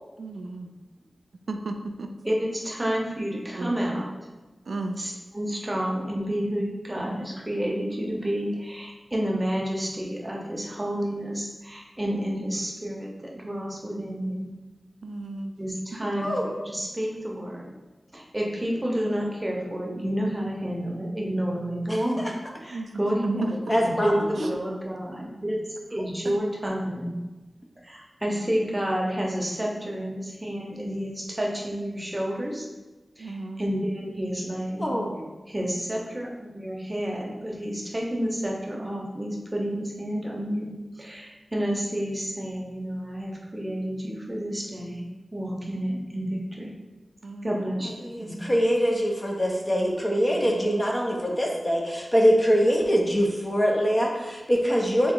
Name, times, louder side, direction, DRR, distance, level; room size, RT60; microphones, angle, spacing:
voice 1, 0.2-0.7 1.5-2.1 3.5-3.7 4.7-5.0 15.0-15.5 16.0-16.1 22.7-22.9 23.2-23.8 24.4-24.5 26.2-26.3 29.8-30.1 33.2-33.6 47.2-47.7 48.2-48.5 50.3-50.7, right 2 dB, 85° right, 5 dB, 0.3 m, -33 dB
voice 2, 2.2-4.1 5.0-14.5 15.6-17.7 18.1-22.2 22.6-25.6 25.9-27.1 27.8-32.7 33.2-35.0 35.5-45.0 45.3-46.7 47.4-48.5, equal, 20° right, -2 dB, 0.8 m, -30 dB
voice 3, 16.2-16.5 21.9-22.0 23.7-24.2 34.8-35.3 48.0-55.1, equal, 25° left, -1 dB, 0.7 m, -23 dB
3.6 x 2.9 x 3.7 m, 1.2 s
wide cardioid pair, 75°, 0 cm